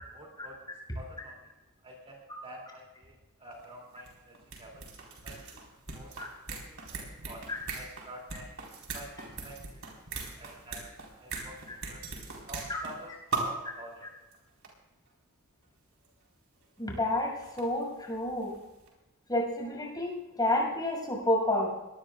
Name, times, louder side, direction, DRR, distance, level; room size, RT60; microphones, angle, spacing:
voice 1, 0.1-0.6 0.9-1.5 1.8-4.8 5.2-5.6 5.9-6.1 6.5-7.4 7.7-8.5 8.9-9.1 9.4-9.8 10.1-10.9 11.2-12.0 12.5-14.1, right 1 dB, 30° right, -2 dB, 2.9 m, -48 dB
sound 1, 3.6-3.7 3.9-13.0 13.3-13.7 14.3-14.4 14.6-14.7 16.0-16.1 17.2-18.6 18.9-19.0, right 3 dB, 65° right, 4.6 m, -39 dB
voice 2, 16.8-18.6 19.3-21.7, left 1 dB, 20° left, -1 dB, 6.4 m, -29 dB
23.0 x 19.5 x 2.5 m, 1.0 s
head